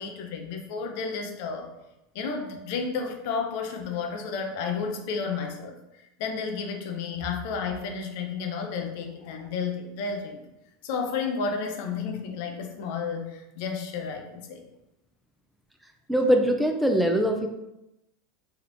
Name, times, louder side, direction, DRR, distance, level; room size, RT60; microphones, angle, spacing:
voice 1, 0.0-1.7 2.1-5.8 6.2-10.4 10.8-14.6, left 5 dB, 65° left, 3 dB, 0.5 m, -32 dB
voice 2, 16.1-17.5, equal, 5° right, 4 dB, 0.4 m, -22 dB
3.3 x 2.4 x 2.9 m, 0.90 s
hypercardioid pair, 90°, 0 cm